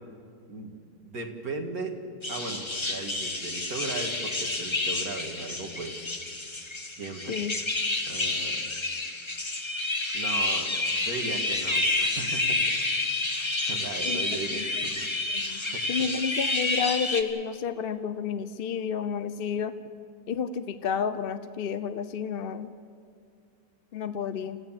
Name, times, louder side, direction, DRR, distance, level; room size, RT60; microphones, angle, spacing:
voice 1, 1.0-2.0 2.3-6.0 7.0-7.4 8.1-8.6 10.1-10.7 11.0-12.6 13.4-15.1 15.4-15.8, right 3 dB, 60° right, 2 dB, 2.5 m, -37 dB
sound 1, 2.2-17.2, left 2 dB, 20° left, 1.1 m, -29 dB
voice 2, 15.9-19.7 20.3-22.7 23.9-24.6, left 7 dB, 50° left, 12 dB, 0.7 m, -30 dB
28.5 x 15.0 x 7.5 m, 2.2 s
omnidirectional pair, 1.8 m